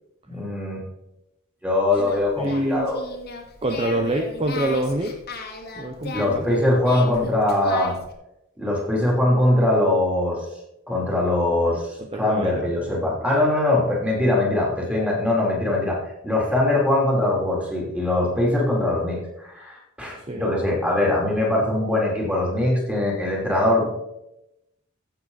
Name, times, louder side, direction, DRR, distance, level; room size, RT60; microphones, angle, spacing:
voice 1, 0.3-0.9 1.6-3.0 6.1-7.9 8.6-10.5 10.9-16.0 16.2-23.9, left 1 dB, 5° right, -3 dB, 3.2 m, -22 dB
Singing, 1.9-8.1, left 3 dB, 50° left, 1.8 m, -36 dB
voice 2, 2.4-2.9 3.6-5.1 5.8-6.6 12.0-12.7 20.3-20.5, right 1 dB, 25° right, 3 dB, 0.8 m, -26 dB
15.5 x 7.4 x 4.1 m, 0.88 s
head